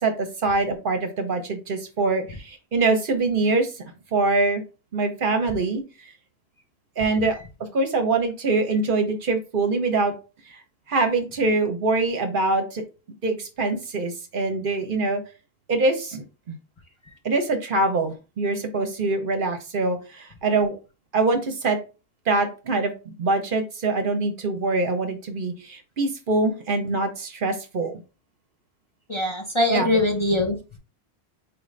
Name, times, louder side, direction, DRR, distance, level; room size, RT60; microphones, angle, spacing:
voice 1, 0.0-3.7 4.1-4.6 4.9-5.8 7.0-10.1 10.5-10.6 10.9-12.8 13.2-15.2 15.7-16.6 17.2-20.8 21.1-21.8 22.3-27.9 29.7-29.9, right 3 dB, 55° right, 6 dB, 0.8 m, -24 dB
voice 2, 29.1-30.6, left 2 dB, 35° left, 0 dB, 0.6 m, -22 dB
4.6 x 2.5 x 3.2 m, 0.31 s
omnidirectional pair, 1.1 m